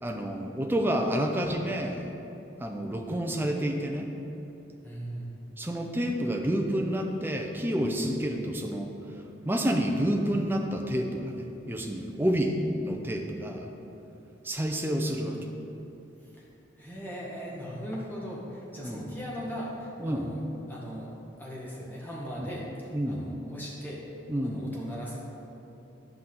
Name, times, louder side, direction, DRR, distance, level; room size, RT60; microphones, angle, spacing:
voice 1, 0.0-2.1 2.6-4.1 5.6-8.9 9.4-13.7 14.4-15.4 18.8-19.0 20.0-20.3 22.4-22.5 22.9-23.3 24.3-24.6, equal, 10° right, 2 dB, 0.6 m, -29 dB
voice 2, 4.8-5.3 16.2-16.5 16.8-20.4 20.7-21.1 21.4-24.0 24.4-25.2, equal, 10° left, -6 dB, 1.3 m, -39 dB
10.0 x 5.8 x 3.8 m, 3.0 s
head